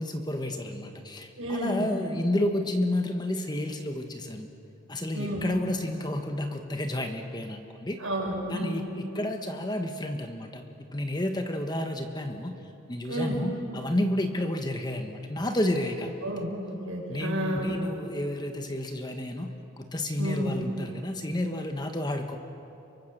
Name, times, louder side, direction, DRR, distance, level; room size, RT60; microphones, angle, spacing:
voice 1, 0.0-4.5 4.9-8.0 8.5-10.6 10.9-12.6 12.9-16.1 17.1-22.4, left 1 dB, 20° left, 5 dB, 1.4 m, -31 dB
voice 2, 1.4-1.8 5.1-5.5 8.0-8.8 13.1-13.4 16.2-17.7 20.2-20.5, right 1 dB, 80° right, -1 dB, 6.4 m, -31 dB
29.0 x 24.0 x 6.8 m, 2.8 s
head